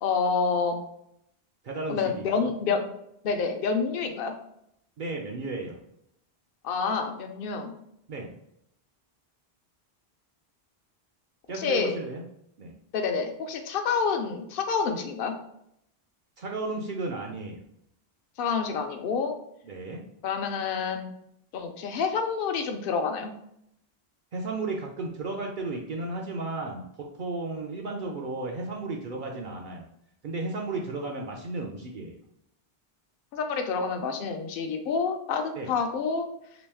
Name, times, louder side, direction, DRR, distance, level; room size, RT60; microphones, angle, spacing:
voice 1, 0.0-0.8 1.9-2.9 3.2-4.3 6.6-7.7 11.5-11.9 12.9-15.3 18.4-19.3 20.2-21.1 21.5-23.3 33.3-36.3, left 5 dB, 65° left, 5 dB, 0.7 m, -28 dB
voice 2, 1.6-2.5 5.0-5.8 8.1-8.3 11.5-12.2 12.6-12.7 16.4-17.6 19.6-20.0 24.3-29.8 30.2-32.2 35.6-35.7, right 3 dB, 60° right, 0 dB, 0.6 m, -34 dB
3.0 x 3.0 x 3.4 m, 0.75 s
omnidirectional pair, 1.0 m